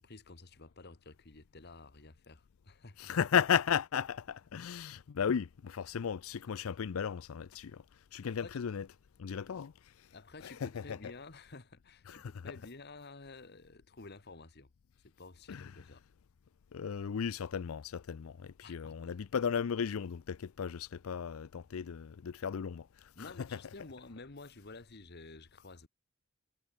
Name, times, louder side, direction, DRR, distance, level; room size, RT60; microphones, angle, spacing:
voice 1, 0.0-3.1 8.2-8.6 10.1-14.7 15.0-16.0 18.6-19.0 23.1-25.9, left 3 dB, 50° left, 1.5 m, -51 dB
voice 2, 3.0-8.9 9.2-10.1 10.4-11.0 12.1-12.3 15.5-15.8 16.7-23.6, left 7 dB, 80° left, 0.4 m, -35 dB
head